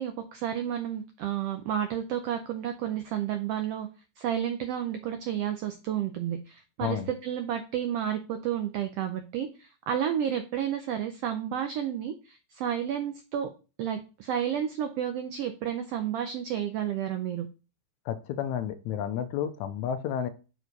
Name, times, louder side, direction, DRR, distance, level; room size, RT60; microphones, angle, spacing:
voice 1, 0.0-3.9 4.2-13.5 13.8-17.5, right 9 dB, 90° right, 8 dB, 1.3 m, -31 dB
voice 2, 18.1-20.3, left 9 dB, 80° left, 11 dB, 1.9 m, -31 dB
6.6 x 4.6 x 4.0 m, 0.33 s
omnidirectional pair, 3.5 m